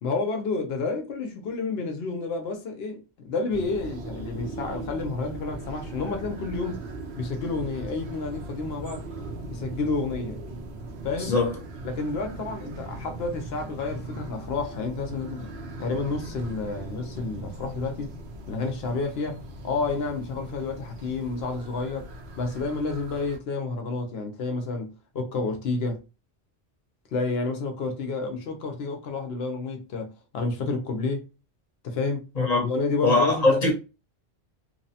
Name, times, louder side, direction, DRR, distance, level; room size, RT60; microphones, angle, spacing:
voice 1, 0.0-6.8 7.2-9.0 9.5-10.4 11.0-11.4 11.8-15.5 15.8-18.1 18.5-22.1 22.4-26.0 27.1-31.3 31.8-32.2 32.6-33.5, left 3 dB, 70° left, 0.9 m, -30 dB
sound 1, 3.5-23.4, right 2 dB, 80° right, 0.9 m, -39 dB
voice 2, 32.4-32.7 33.0-33.7, left 2 dB, 40° left, 0.9 m, -21 dB
3.0 x 2.0 x 2.7 m
omnidirectional pair, 1.1 m